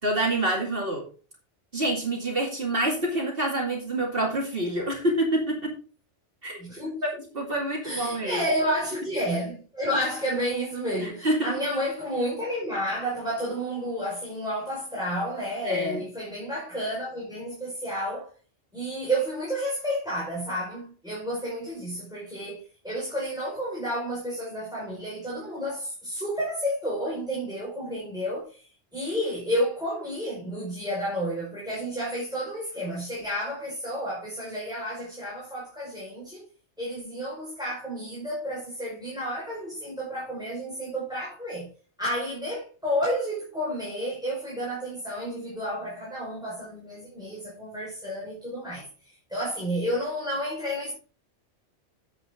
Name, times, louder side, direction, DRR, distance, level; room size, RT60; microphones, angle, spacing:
voice 1, 0.0-1.0 1.7-5.7 6.4-6.6 7.0-7.1 7.3-8.4 11.0-11.4 15.6-16.0, right 1 dB, 50° right, 2.7 m, -27 dB
voice 2, 6.6-7.0 7.8-18.3 18.7-36.4 36.8-41.7 42.0-50.9, equal, 5° right, 5.2 m, -31 dB
9.9 x 8.2 x 3.8 m
omnidirectional pair, 1.2 m